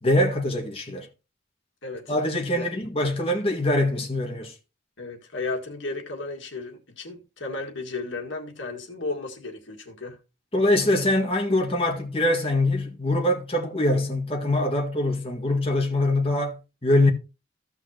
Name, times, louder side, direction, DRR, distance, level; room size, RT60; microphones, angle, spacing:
voice 1, 0.0-1.1 2.1-4.5 10.5-17.1, left 1 dB, 30° left, 1.8 m, -23 dB
voice 2, 1.8-2.2 2.5-2.7 5.0-10.2, left 3 dB, 85° left, 1.9 m, -34 dB
15.0 x 5.8 x 2.9 m
head